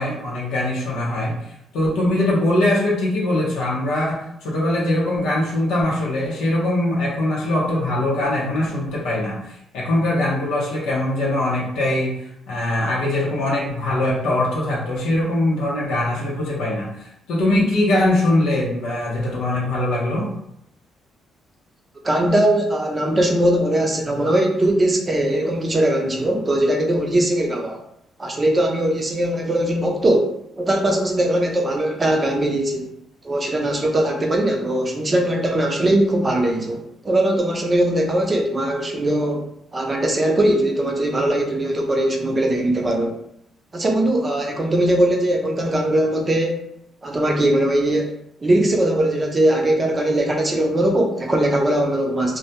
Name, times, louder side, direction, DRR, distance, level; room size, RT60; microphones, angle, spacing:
voice 1, 0.0-1.3 1.7-12.1 12.5-20.3, left 1 dB, 90° left, -5 dB, 0.7 m, -22 dB
voice 2, 22.0-27.8 28.2-32.9 33.2-39.5 39.7-43.2 43.7-46.6 47.0-48.1 48.4-52.4, right 1 dB, 30° right, 2 dB, 0.5 m, -20 dB
2.2 x 2.1 x 2.8 m, 0.77 s
cardioid pair, 90°, 0 cm